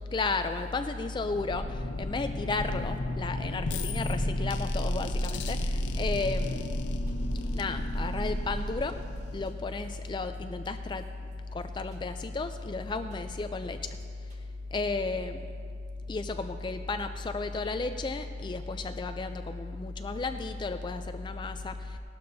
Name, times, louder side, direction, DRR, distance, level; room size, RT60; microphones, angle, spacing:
voice 1, 0.1-6.7 7.5-9.0 9.3-11.0 11.5-13.8 14.7-15.4 16.1-22.0, left 3 dB, 25° left, 8 dB, 0.3 m, -33 dB
sound 1, 1.2-9.7, left 1 dB, 75° left, 0.7 m, -32 dB
sound 2, 7.1-7.4 7.7-7.8 8.0-8.1 8.3-8.6 8.9-9.2 9.4-10.1 10.3-11.6 11.9-12.2 12.5-12.6 12.8-13.4 13.7-14.0 14.3-14.4, equal, 40° right, 1.8 m, -57 dB
18.0 x 12.0 x 2.7 m, 2.2 s
head